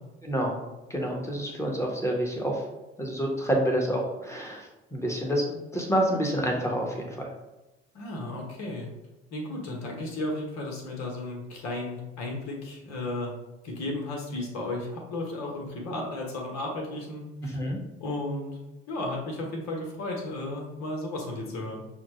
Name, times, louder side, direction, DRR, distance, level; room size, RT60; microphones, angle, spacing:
voice 1, 0.2-0.6 0.9-2.6 3.0-7.3 17.4-17.8, equal, 10° left, 0 dB, 1.2 m, -28 dB
voice 2, 7.9-8.9 9.3-13.3 13.6-17.6 18.0-18.6 18.9-21.9, left 2 dB, 60° left, 0 dB, 1.2 m, -34 dB
6.2 x 2.2 x 3.1 m, 1.0 s
figure-of-eight pair, 50°, 31 cm